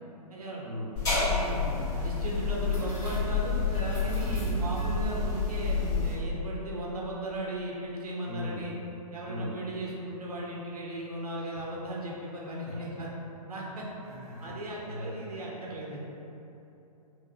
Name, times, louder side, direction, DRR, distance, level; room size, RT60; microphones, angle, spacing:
voice 1, 0.3-0.6 1.1-8.7 9.1-13.1 13.5-13.9 14.4-16.0, right 1 dB, 65° right, -4 dB, 0.9 m, -36 dB
sound 1, 1.0-6.2, left 4 dB, 15° left, 1.4 m, -29 dB
voice 2, 8.3-8.6 9.3-9.5 11.3-11.5 12.6-13.0 14.0-14.5 14.8-15.6, left 1 dB, 15° right, -8 dB, 0.7 m, -39 dB
5.1 x 2.5 x 2.8 m, 3.0 s
figure-of-eight pair, 125°, 20 cm